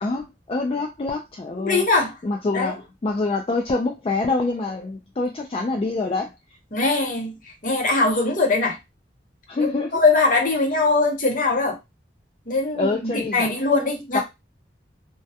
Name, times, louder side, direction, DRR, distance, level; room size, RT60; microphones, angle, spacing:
voice 1, 0.0-1.9 2.2-6.3 9.5-10.0 12.7-13.5 14.1-14.2, left 3 dB, 30° left, 1 dB, 0.3 m, -25 dB
voice 2, 1.6-2.1 2.5-2.7 6.7-8.8 9.6-11.8 12.5-14.2, left 3 dB, 45° left, 2 dB, 0.7 m, -21 dB
2.2 x 2.2 x 2.7 m, 0.21 s
head